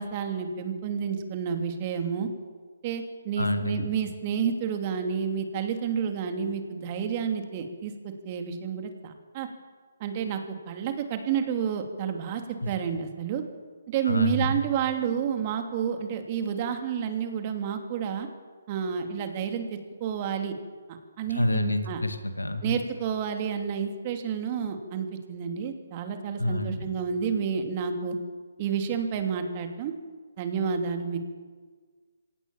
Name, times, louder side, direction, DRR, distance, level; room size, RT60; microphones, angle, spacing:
voice 1, 0.0-2.3 2.8-9.5 10.0-10.4 10.7-13.4 13.9-18.3 18.7-20.5 21.2-22.0 22.6-28.2 28.6-29.9 30.4-31.2, right 7 dB, 35° right, 6 dB, 2.8 m, -30 dB
voice 2, 3.4-3.8 14.1-14.6 21.4-22.7 26.4-26.8, left 1 dB, 90° left, 8 dB, 2.4 m, -28 dB
25.0 x 17.5 x 7.2 m, 1.5 s
figure-of-eight pair, 140°, 0 cm